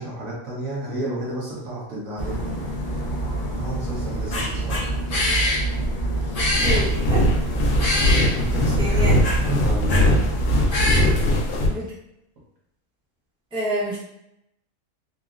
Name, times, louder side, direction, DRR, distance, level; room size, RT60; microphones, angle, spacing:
voice 1, 0.0-2.4 3.4-4.9 8.4-9.1 9.3-10.3 11.2-11.4, right 1 dB, 65° right, -5 dB, 1.3 m, -31 dB
sound 1, 2.2-11.0, right 1 dB, 65° left, 0.3 m, -24 dB
sound 2, 6.4-11.7, left 1 dB, 85° left, 1.1 m, -21 dB
voice 2, 6.6-7.2 8.7-9.2 11.7-11.9 13.5-14.0, right 1 dB, 5° right, -8 dB, 0.7 m, -28 dB
3.7 x 2.1 x 2.4 m, 0.81 s
omnidirectional pair, 1.6 m